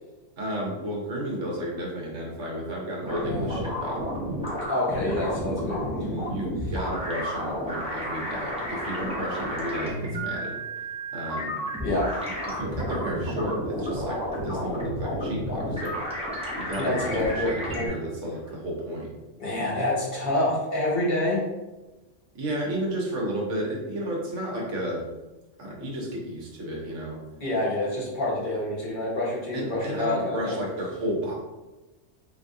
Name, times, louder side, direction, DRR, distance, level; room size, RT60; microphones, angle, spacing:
voice 1, 0.4-4.1 6.3-10.6 11.1-11.5 12.2-16.0 16.5-19.1 22.4-25.0 25.6-27.2 29.5-31.3, right 1 dB, 85° right, -2 dB, 1.2 m, -32 dB
sound 1, 3.1-17.9, equal, 5° right, 0.5 m, -31 dB
voice 2, 4.7-6.1 11.8-12.2 16.8-17.9 19.4-21.4 27.4-30.6, left 1 dB, 45° left, -6 dB, 1.3 m, -27 dB
3.5 x 2.7 x 2.6 m, 1.1 s
omnidirectional pair, 1.2 m